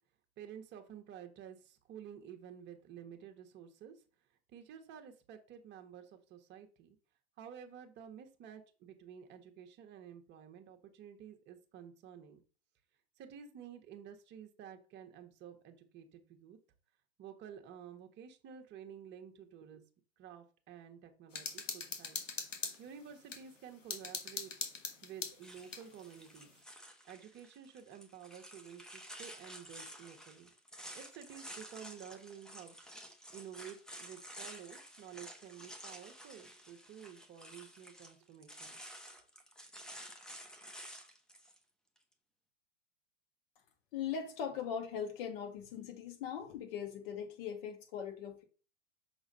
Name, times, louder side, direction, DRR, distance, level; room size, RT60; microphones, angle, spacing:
voice 1, 0.4-3.9 4.5-7.0 7.4-12.4 13.2-16.6 17.2-19.8 20.2-22.2 22.8-24.5 25.0-26.5 27.0-30.5 30.9-32.8 33.3-38.8, right 8 dB, 30° right, 1.3 m, -51 dB
sound 1, 21.3-23.4 23.9-25.9, left 5 dB, 85° left, 1.6 m, -41 dB
sound 2, 25.4-41.6, equal, ahead, 0.9 m, -51 dB
voice 2, 43.9-48.4, left 7 dB, 50° left, 2.1 m, -40 dB
6.2 x 3.9 x 5.2 m
hypercardioid pair, 105°, 37 cm